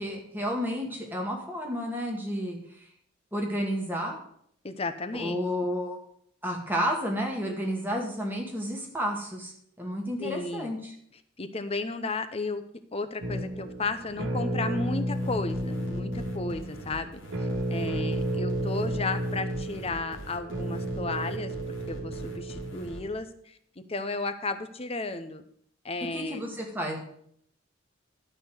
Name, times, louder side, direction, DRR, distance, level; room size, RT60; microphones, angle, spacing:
voice 1, 0.0-2.9 3.3-4.2 5.1-6.0 6.4-9.5 9.8-10.9 26.1-27.0, equal, 10° right, 0 dB, 2.1 m, -31 dB
voice 2, 4.6-5.4 10.2-10.7 11.4-12.6 12.9-21.5 21.9-23.5 23.9-25.4 25.8-26.4, left 3 dB, 30° left, 9 dB, 0.7 m, -33 dB
sound 1, 13.2-23.1, right 1 dB, 90° right, 1.9 m, -32 dB
sound 2, 15.1-23.0, right 1 dB, 60° left, 2.1 m, -44 dB
12.5 x 4.3 x 7.9 m, 0.67 s
head